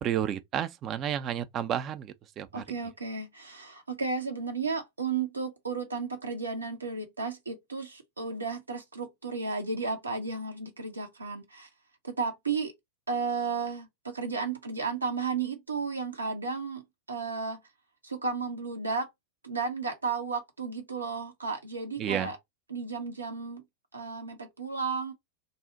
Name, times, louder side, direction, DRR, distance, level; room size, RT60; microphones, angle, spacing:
voice 1, 0.0-2.6 22.0-22.3, right 10 dB, 30° right, 0.4 m, -31 dB
voice 2, 2.5-11.7 12.0-12.7 13.1-17.6 18.0-19.1 19.4-22.4 22.7-23.6 23.9-25.1, right 4 dB, 80° right, 0.6 m, -33 dB
2.5 x 2.0 x 3.8 m
figure-of-eight pair, 90°, 0 cm